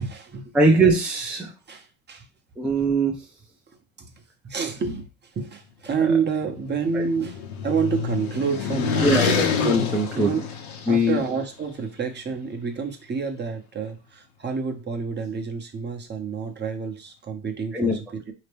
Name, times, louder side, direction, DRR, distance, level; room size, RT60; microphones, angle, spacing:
voice 1, 0.0-0.6 1.7-2.3 3.7-4.1 4.4-9.4 10.1-10.4 10.9-18.3, right 5 dB, 25° right, 0.9 m, -29 dB
voice 2, 0.5-1.5 2.6-3.2 6.9-7.0 9.0-10.3 10.9-11.2 17.7-18.0, right 1 dB, 5° right, 0.6 m, -21 dB
sound 1, 6.4-11.2, left 6 dB, 65° left, 1.0 m, -27 dB
4.2 x 2.9 x 3.4 m
hypercardioid pair, 90°, 42 cm